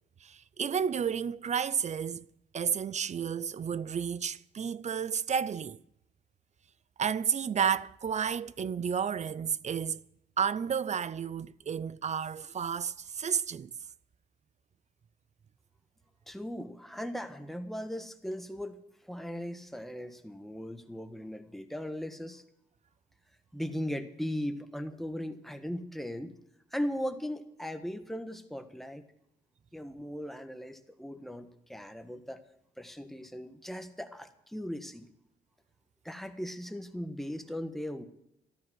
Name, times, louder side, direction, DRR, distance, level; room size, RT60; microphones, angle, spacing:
voice 1, 0.2-2.3 2.5-5.8 7.0-10.0 10.4-13.7, right 7 dB, 35° right, 0.5 m, -31 dB
voice 2, 16.3-18.8 19.0-22.4 23.5-26.3 26.7-29.0 29.7-32.4 32.8-35.1 36.0-38.0, equal, ahead, 1.3 m, -38 dB
13.5 x 12.5 x 6.1 m
cardioid pair, 90°, 20 cm